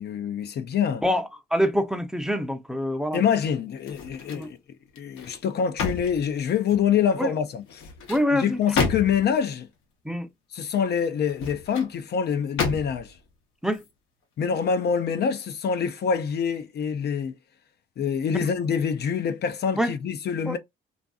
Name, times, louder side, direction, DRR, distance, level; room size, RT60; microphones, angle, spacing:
voice 1, 0.0-1.0 3.1-4.6 5.0-7.8 8.3-9.7 10.5-13.1 14.4-17.3 18.0-20.6, left 7 dB, 55° left, 0.5 m, -25 dB
voice 2, 1.0-3.2 4.3-4.5 7.2-7.3 8.1-8.6 10.0-10.3 13.6-13.8 19.8-19.9 20.5-20.6, equal, 5° right, 0.6 m, -25 dB
sound 1, 3.8-4.5 5.0-6.9 7.7-9.4 11.2-11.9 12.6-13.2 13.7-13.9, left 5 dB, 85° left, 0.9 m, -32 dB
2.5 x 2.5 x 2.3 m
cardioid pair, 90°, 20 cm